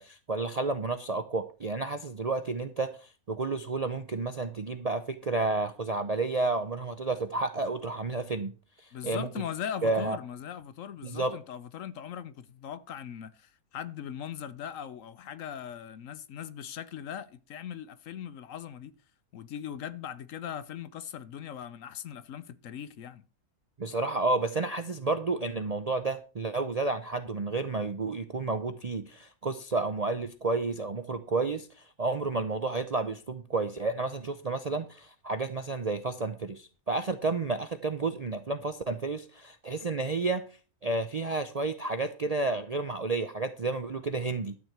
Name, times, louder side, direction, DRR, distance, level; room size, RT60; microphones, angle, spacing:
voice 1, 0.0-9.3 9.8-10.2 11.0-11.4 23.8-40.4 40.8-44.6, right 3 dB, 45° right, 0.5 m, -31 dB
voice 2, 8.9-18.9 19.3-23.2, left 9 dB, 65° left, 1.0 m, -40 dB
12.5 x 4.5 x 7.9 m
omnidirectional pair, 1.6 m